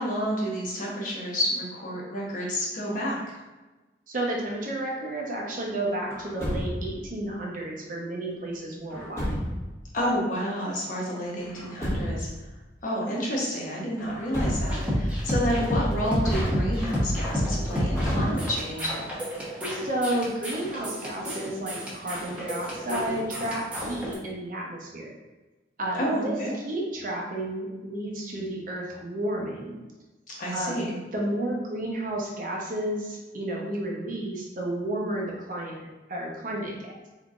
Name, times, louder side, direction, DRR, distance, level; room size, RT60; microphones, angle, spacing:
voice 1, 0.0-3.2 9.9-12.3 12.8-19.0 26.0-26.5 30.3-31.0, equal, 45° left, -4 dB, 1.0 m, -29 dB
voice 2, 4.1-9.4 19.7-25.1 25.8-26.4 26.6-29.8 30.5-30.8 31.1-37.1, right 1 dB, 45° right, -2 dB, 0.8 m, -32 dB
Truck, 6.1-7.1 8.9-9.7 11.4-12.4 14.0-15.0 16.2-17.0 17.9-18.8, equal, 15° left, 1.1 m, -31 dB
sound 1, 14.5-24.1, equal, 5° right, 0.9 m, -30 dB
4.1 x 3.8 x 2.4 m, 1.2 s
head